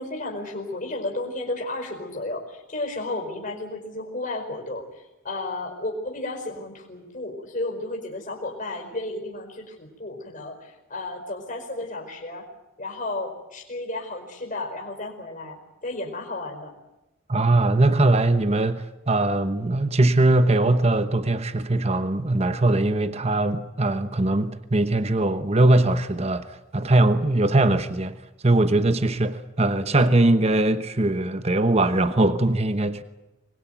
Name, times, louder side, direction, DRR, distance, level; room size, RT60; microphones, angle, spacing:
voice 1, 0.0-12.5 12.8-16.7, left 2 dB, 40° left, 2 dB, 4.8 m, -33 dB
voice 2, 17.3-28.2 28.4-33.0, right 2 dB, 30° right, 11 dB, 1.0 m, -21 dB
25.0 x 21.0 x 9.3 m, 0.96 s
head